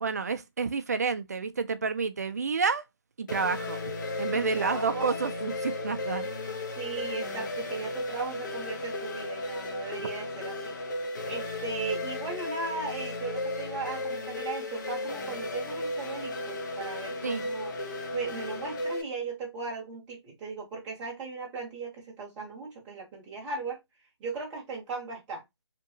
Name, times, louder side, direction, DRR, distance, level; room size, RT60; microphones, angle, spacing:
voice 1, 0.0-2.8 3.2-3.8 4.2-6.3 17.2-17.4, right 5 dB, 35° right, 0.3 m, -29 dB
sound 1, 3.3-19.0, left 2 dB, 40° left, 0.6 m, -35 dB
voice 2, 4.3-5.2 6.8-10.8 11.3-17.7 18.1-23.8 24.2-25.4, right 4 dB, 10° right, 0.7 m, -37 dB
2.8 x 2.5 x 2.6 m
figure-of-eight pair, 165°, 15 cm